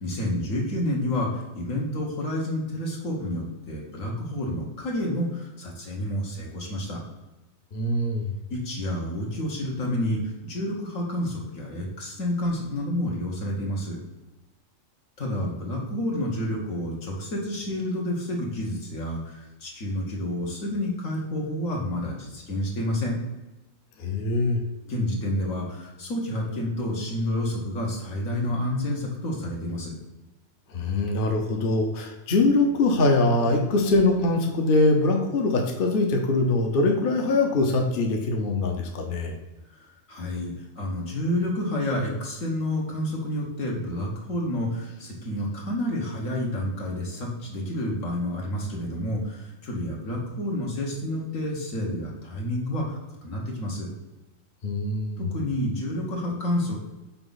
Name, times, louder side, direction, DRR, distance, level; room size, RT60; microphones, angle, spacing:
voice 1, 0.0-7.0 8.5-14.0 15.2-23.2 24.9-29.9 39.7-53.9 55.2-56.8, left 1 dB, 75° left, -2 dB, 1.8 m, -29 dB
voice 2, 7.7-8.3 24.0-24.6 30.7-39.4 54.6-55.3, left 2 dB, 50° left, 3 dB, 0.9 m, -23 dB
5.8 x 4.6 x 3.9 m, 1.1 s
omnidirectional pair, 1.4 m